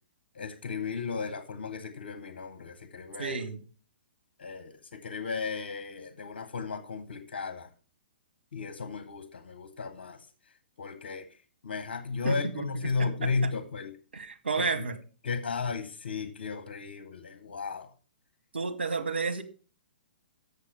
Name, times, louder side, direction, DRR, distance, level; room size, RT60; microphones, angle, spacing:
voice 1, 0.3-3.4 4.4-7.7 8.5-10.3 10.8-11.3 11.6-13.9 14.8-14.9 15.2-17.9, left 4 dB, 65° left, 8 dB, 1.1 m, -34 dB
voice 2, 3.2-3.6 12.2-12.6 13.0-13.3 14.1-15.0 18.5-19.4, right 4 dB, 80° right, 6 dB, 1.4 m, -31 dB
7.2 x 6.9 x 4.9 m, 0.37 s
figure-of-eight pair, 120°, 6 cm